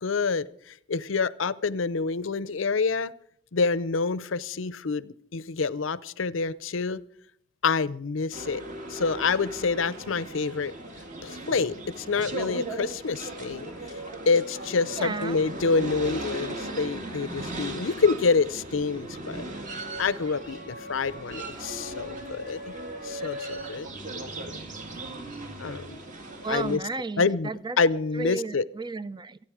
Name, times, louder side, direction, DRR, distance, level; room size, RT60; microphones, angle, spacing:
voice 1, 0.0-3.1 3.5-7.0 7.6-8.6 8.9-10.7 11.2-13.7 14.3-19.4 20.0-22.7 23.0-23.9 25.6-26.0 26.5-26.8 27.2-27.5 27.8-28.6, left 4 dB, 80° left, 18 dB, 0.7 m, -27 dB
sound 1, 8.3-26.8, right 1 dB, 40° right, 2.1 m, -37 dB
voice 2, 14.9-15.4 26.4-27.8 28.1-29.4, right 3 dB, 20° right, 16 dB, 0.5 m, -33 dB
26.5 x 9.7 x 4.9 m, 0.65 s
head